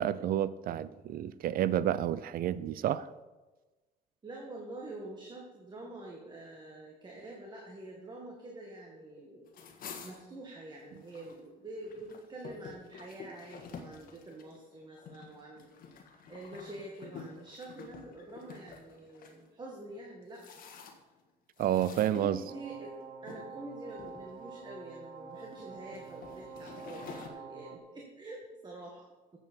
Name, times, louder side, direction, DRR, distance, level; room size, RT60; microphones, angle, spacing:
voice 1, 0.0-3.1 21.6-22.4, right 11 dB, 60° right, 0.5 m, -30 dB
voice 2, 4.2-9.5 10.0-16.0 16.3-20.4 21.9-29.1, right 2 dB, 25° right, 1.8 m, -46 dB
sound 1, 9.5-11.4 11.8-19.4 20.0-21.2 21.6-22.8 23.3-23.5 23.9-24.7 25.3-27.3, left 5 dB, 60° left, 1.6 m, -49 dB
sound 2, 22.5-27.8, right 5 dB, 45° right, 1.4 m, -47 dB
13.5 x 8.0 x 4.5 m
cardioid pair, 110°, 17 cm